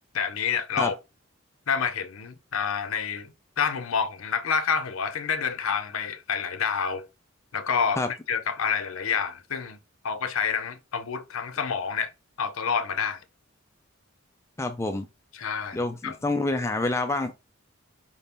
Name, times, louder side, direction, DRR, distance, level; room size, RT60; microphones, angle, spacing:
voice 1, 0.1-0.9 1.7-7.1 7.5-9.8 10.0-12.1 12.4-13.2 15.3-16.2, left 6 dB, 80° left, 0.6 m, -28 dB
voice 2, 14.6-15.1 15.7-17.3, left 2 dB, 15° left, 0.4 m, -27 dB
5.0 x 2.7 x 3.5 m
head